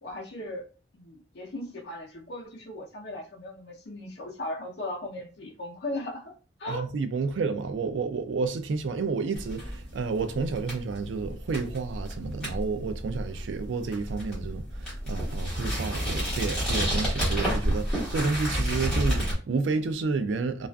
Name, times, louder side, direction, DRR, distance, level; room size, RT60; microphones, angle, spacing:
voice 1, 0.0-6.3 6.6-6.9, left 1 dB, 60° left, 0.6 m, -37 dB
voice 2, 6.7-20.7, right 4 dB, 80° right, 0.4 m, -30 dB
sound 1, 9.3-19.3, equal, 5° left, 1.3 m, -30 dB
2.4 x 2.4 x 2.2 m
head